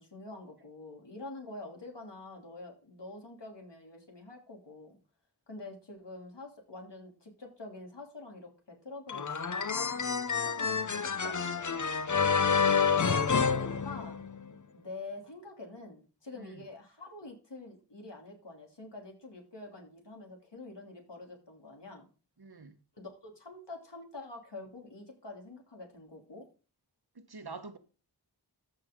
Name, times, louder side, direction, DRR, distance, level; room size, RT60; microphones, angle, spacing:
voice 1, 0.0-5.0 5.5-10.0 10.4-11.9 13.8-14.2 14.5-22.1 23.0-26.5, left 2 dB, 85° left, 3.0 m, -47 dB
sound 1, 9.1-14.5, left 6 dB, 45° left, 0.7 m, -28 dB
voice 2, 13.1-13.6 16.4-16.5 22.4-22.8 27.1-27.8, right 4 dB, 65° right, 1.3 m, -47 dB
14.0 x 6.0 x 3.7 m
wide cardioid pair, 50°, 41 cm